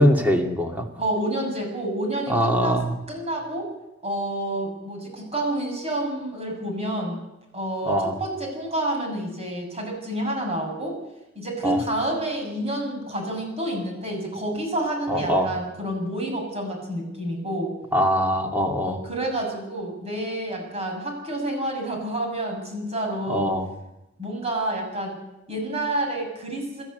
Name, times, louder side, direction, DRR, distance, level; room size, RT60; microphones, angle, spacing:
voice 1, 0.0-0.9 2.3-3.0 7.9-8.2 11.6-11.8 15.1-15.5 17.9-19.0 23.3-23.7, equal, 10° right, 2 dB, 2.7 m, -22 dB
voice 2, 1.0-2.8 3.1-3.7 4.0-7.2 7.5-10.9 11.4-17.7 18.8-23.5 24.2-25.2 25.5-26.8, right 1 dB, 35° right, 1 dB, 7.0 m, -29 dB
29.5 x 13.5 x 8.1 m, 0.94 s
head